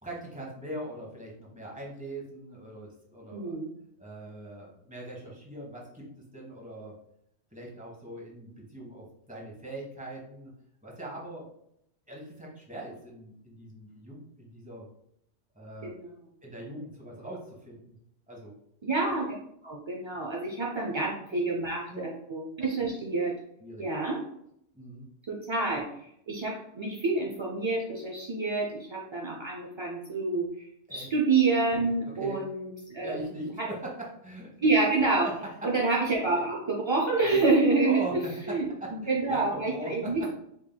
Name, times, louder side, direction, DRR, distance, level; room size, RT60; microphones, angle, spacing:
voice 1, 0.0-3.5 4.0-6.0 6.3-6.9 7.5-10.5 10.8-11.4 12.1-14.9 15.5-15.9 16.4-17.9 18.3-18.5 20.7-20.8 21.3-21.4 21.9-22.0 23.6-23.9 24.7-25.1 30.9-31.1 32.2-32.4 33.0-33.9 34.2-34.5 35.6-35.7 37.8-40.3, right 1 dB, 5° right, -4 dB, 1.1 m, -41 dB
voice 2, 3.3-3.7 15.8-16.1 18.8-19.3 19.6-23.3 23.8-24.2 25.3-25.8 26.3-30.5 30.9-33.1 33.6-33.7 34.6-35.3 35.6-38.0 38.5-38.6 39.1-40.3, right 3 dB, 45° right, -2 dB, 0.3 m, -27 dB
4.5 x 3.7 x 2.2 m, 0.74 s
omnidirectional pair, 1.2 m